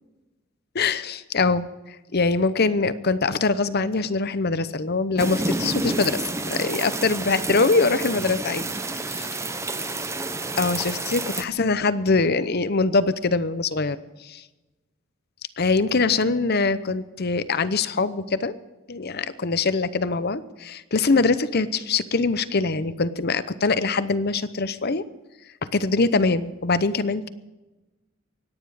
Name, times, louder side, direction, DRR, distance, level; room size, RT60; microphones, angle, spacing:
voice 1, 0.7-8.7 9.0-9.3 10.6-14.4 15.6-18.5 18.9-25.0 25.7-27.3, left 3 dB, 45° left, 14 dB, 0.8 m, -23 dB
sound 1, 5.2-11.4, right 2 dB, 15° right, 0.7 m, -29 dB
24.5 x 10.0 x 4.9 m, 1.1 s
head